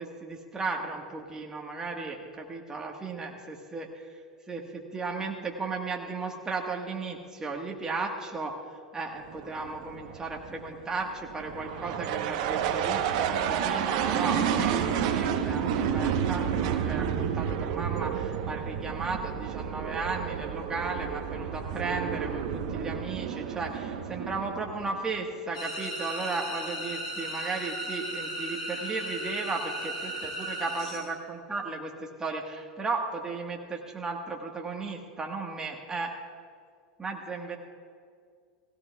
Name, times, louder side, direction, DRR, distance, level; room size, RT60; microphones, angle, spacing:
voice 1, 0.0-4.1 4.5-36.1 37.0-37.6, right 3 dB, 15° right, 0 dB, 1.4 m, -35 dB
sound 1, 9.2-25.2, right 8 dB, 60° right, 1.0 m, -30 dB
sound 2, 25.5-31.0, right 1 dB, 90° left, 3.5 m, -36 dB
18.0 x 16.5 x 2.4 m, 2.1 s
hypercardioid pair, 95°, 4 cm